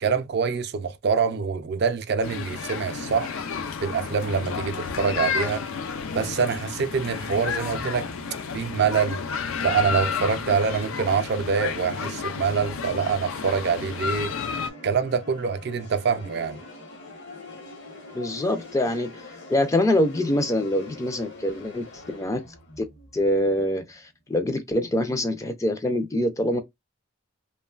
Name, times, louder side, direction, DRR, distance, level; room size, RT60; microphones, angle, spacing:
voice 1, 0.0-3.4 3.8-5.6 6.1-8.1 8.5-9.2 9.6-14.3 14.8-16.6, right 6 dB, 55° right, 0.4 m, -25 dB
sound 1, 2.2-14.7, left 6 dB, 85° left, 0.4 m, -31 dB
sound 2, 6.4-24.1, left 2 dB, 60° left, 0.9 m, -45 dB
voice 2, 18.1-19.2 19.5-22.4 22.8-22.9 23.1-26.6, left 1 dB, 15° left, 0.3 m, -25 dB
3.0 x 2.2 x 2.3 m
head